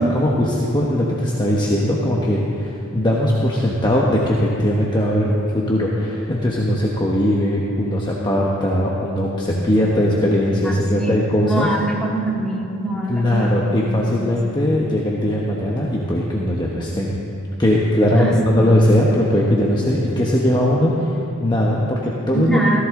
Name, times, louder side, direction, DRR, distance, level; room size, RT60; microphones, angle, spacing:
voice 1, 0.0-11.7 13.1-17.1 17.6-22.8, left 1 dB, 20° left, -4 dB, 1.1 m, -19 dB
voice 2, 10.6-13.5 13.8-14.1 18.1-18.8 20.8-20.9 22.3-22.8, right 2 dB, 5° left, -4 dB, 2.0 m, -24 dB
17.0 x 14.5 x 3.8 m, 2.8 s
head